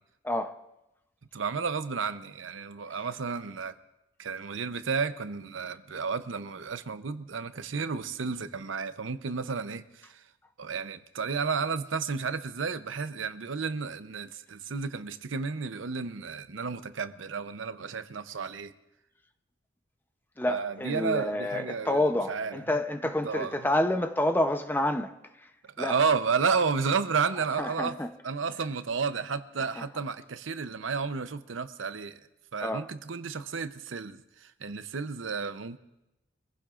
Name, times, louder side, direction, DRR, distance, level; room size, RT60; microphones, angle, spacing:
voice 1, 0.2-0.7 20.4-25.5 25.8-26.0 27.6-28.1 29.8-29.9 32.6-32.8, left 1 dB, 10° left, 0.7 m, -29 dB
voice 2, 1.3-3.8 4.2-10.2 10.6-18.7 20.5-22.0 22.3-22.6 23.2-23.6 25.8-28.0 28.2-32.2 32.5-35.8, right 5 dB, 85° right, 0.7 m, -32 dB
25.0 x 15.0 x 2.5 m
head